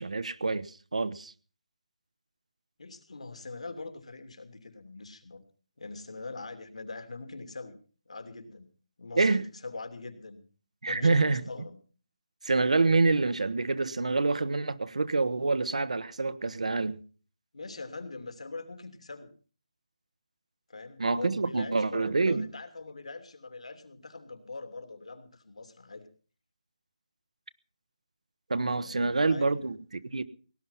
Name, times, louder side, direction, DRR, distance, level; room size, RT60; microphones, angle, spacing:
voice 1, 0.0-1.3 9.2-9.5 10.8-11.4 12.4-17.0 21.0-22.5 28.5-30.2, right 3 dB, 90° right, 1.2 m, -27 dB
voice 2, 2.8-5.4 5.8-7.8 8.1-8.7 9.0-10.4 10.9-11.8 17.5-19.3 20.7-26.1 28.8-29.8, left 3 dB, 75° left, 2.9 m, -43 dB
18.0 x 11.0 x 5.7 m
hypercardioid pair, 180°, 4 cm